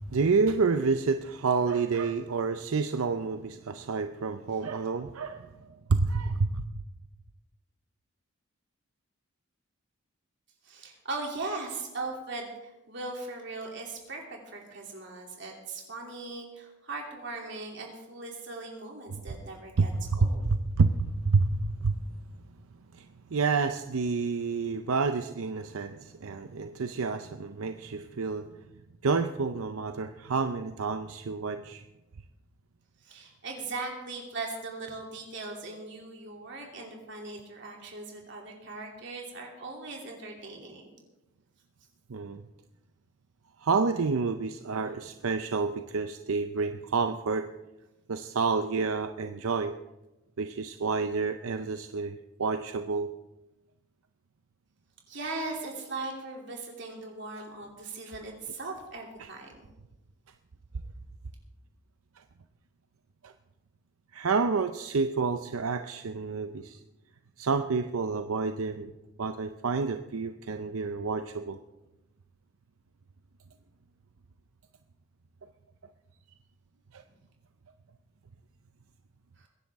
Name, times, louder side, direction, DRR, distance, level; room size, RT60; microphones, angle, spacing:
voice 1, 0.0-6.6 19.1-19.2 19.8-22.0 22.9-28.5 29.0-31.8 42.1-42.4 43.6-47.5 48.1-49.8 50.4-53.1 58.1-58.2 59.2-59.3 62.2-62.3 63.2-63.3 64.1-66.8 67.4-68.9 69.2-71.6 76.9-77.0, right 4 dB, 80° right, 8 dB, 0.6 m, -29 dB
voice 2, 10.6-20.4 33.0-41.0 44.9-45.0 55.1-59.5 79.4-79.5, right 3 dB, 55° right, 0 dB, 2.9 m, -39 dB
22.5 x 10.5 x 3.5 m, 1.0 s
head